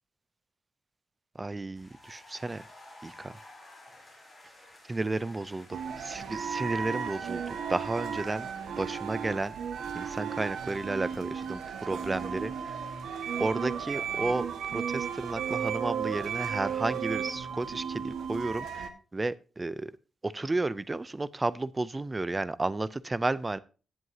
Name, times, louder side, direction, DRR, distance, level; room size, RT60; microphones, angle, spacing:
voice 1, 1.4-2.6 3.0-3.4 4.9-7.4 7.7-8.5 8.8-9.6 9.9-12.8 13.4-19.9 20.2-23.6, right 2 dB, 15° right, 18 dB, 0.4 m, -32 dB
sound 1, 1.7-16.3, left 1 dB, 5° left, 4.7 m, -55 dB
sound 2, 5.7-18.9, right 7 dB, 90° right, 1.5 m, -34 dB
15.5 x 7.8 x 2.7 m, 0.34 s
wide cardioid pair, 170°, 0 cm